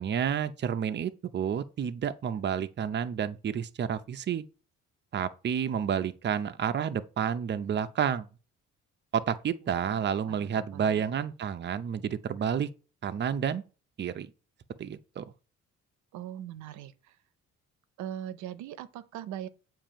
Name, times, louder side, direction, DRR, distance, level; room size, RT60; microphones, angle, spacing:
voice 1, 0.0-4.4 5.1-8.3 9.1-12.7 13.0-13.6 14.0-14.3 14.8-15.3, right 8 dB, 40° right, 0.6 m, -30 dB
voice 2, 9.8-11.3 16.1-16.9 18.0-19.5, right 11 dB, 85° right, 0.6 m, -41 dB
7.3 x 2.7 x 5.1 m
cardioid pair, 85°, 29 cm